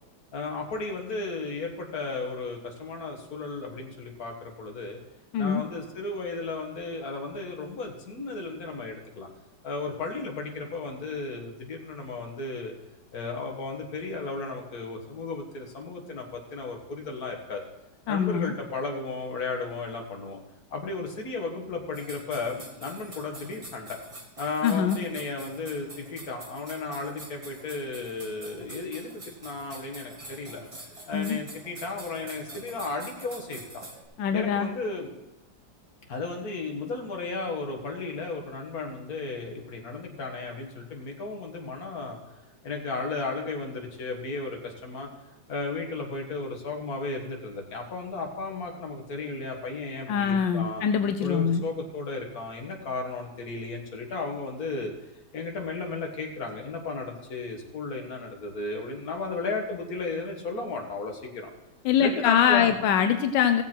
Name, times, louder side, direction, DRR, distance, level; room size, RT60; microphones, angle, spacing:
voice 1, 0.3-5.0 5.4-9.3 9.6-12.7 13.1-17.6 18.1-20.4 20.7-24.0 24.4-30.6 31.1-33.8 34.3-35.1 36.1-42.2 42.6-45.1 45.5-50.8 51.2-54.9 55.3-61.5 62.0-62.7, left 3 dB, 55° left, 1 dB, 2.0 m, -34 dB
voice 2, 18.1-18.5 24.6-25.0 31.1-31.4 34.2-34.7 50.1-51.6 61.8-63.6, left 8 dB, 90° left, 8 dB, 1.4 m, -23 dB
sound 1, 21.9-34.0, right 2 dB, 20° right, 1.4 m, -46 dB
16.0 x 7.2 x 4.4 m, 0.98 s
omnidirectional pair, 1.9 m